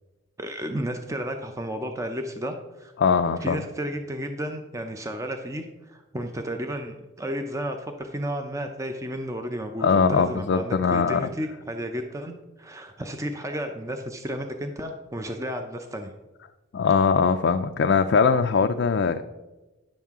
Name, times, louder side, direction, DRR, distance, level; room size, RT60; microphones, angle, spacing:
voice 1, 0.4-2.9 3.4-16.1, equal, 15° right, 5 dB, 0.5 m, -32 dB
voice 2, 3.0-3.6 9.8-11.3 16.7-19.2, left 5 dB, 55° left, 6 dB, 0.4 m, -21 dB
10.0 x 7.3 x 3.6 m, 1.1 s
head